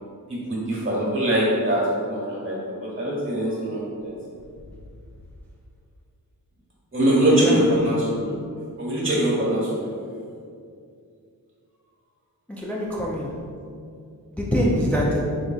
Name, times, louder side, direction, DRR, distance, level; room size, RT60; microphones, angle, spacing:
voice 1, 0.3-4.1 6.9-8.3 8.8-9.8, right 1 dB, 30° right, -6 dB, 1.4 m, -23 dB
voice 2, 7.3-8.0 12.6-13.3 14.3-15.2, equal, 5° left, -4 dB, 0.4 m, -24 dB
3.8 x 3.5 x 2.3 m, 2.3 s
wide cardioid pair, 80°, 39 cm